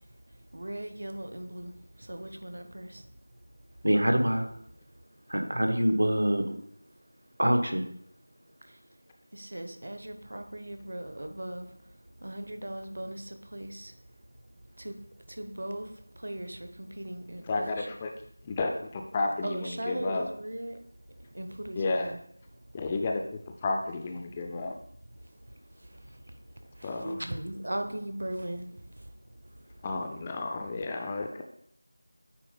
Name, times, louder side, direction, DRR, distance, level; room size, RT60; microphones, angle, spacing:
voice 1, 0.5-1.7 2.1-3.0 9.3-11.7 12.2-13.2 13.5-13.9 14.8-14.9 15.4-15.9 16.2-17.9 19.4-20.8 21.3-22.2 27.2-28.7, right 1 dB, 60° right, 7 dB, 0.9 m, -38 dB
voice 2, 3.8-4.4 5.3-6.6 7.4-7.8 27.0-27.2, equal, 85° right, 5 dB, 1.3 m, -25 dB
voice 3, 17.5-18.1 18.4-20.3 21.8-22.1 22.7-24.8 26.8-27.2 29.8-31.4, left 3 dB, 15° left, 3 dB, 0.4 m, -32 dB
9.1 x 3.7 x 3.8 m, 0.68 s
figure-of-eight pair, 175°, 0 cm